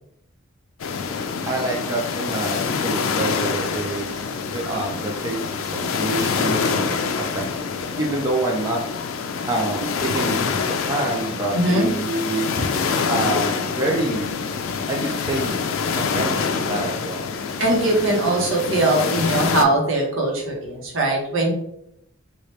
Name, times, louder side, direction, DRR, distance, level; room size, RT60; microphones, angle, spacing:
sound 1, 0.8-19.6, left 5 dB, 80° left, 0.4 m, -26 dB
voice 1, 1.5-4.3 4.5-7.0 7.3-7.5 8.0-8.8 9.5-12.6 13.1-14.3 14.9-15.6 16.0-17.3, right 2 dB, 15° right, -2 dB, 0.4 m, -27 dB
voice 2, 11.5-11.9 17.6-21.5, right 2 dB, 75° right, -2 dB, 1.0 m, -21 dB
3.0 x 2.4 x 3.1 m, 0.75 s
head